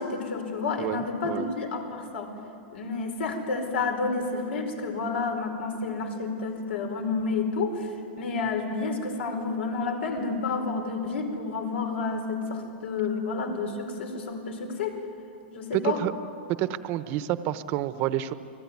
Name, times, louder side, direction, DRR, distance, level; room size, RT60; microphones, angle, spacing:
voice 1, 0.0-2.3 2.7-15.0 15.5-16.0, left 4 dB, 85° left, 5 dB, 4.9 m, -30 dB
voice 2, 0.8-1.5 15.7-16.1 16.6-18.3, right 13 dB, 30° right, 12 dB, 0.9 m, -29 dB
29.5 x 20.0 x 9.5 m, 2.7 s
supercardioid pair, 165°, 6 cm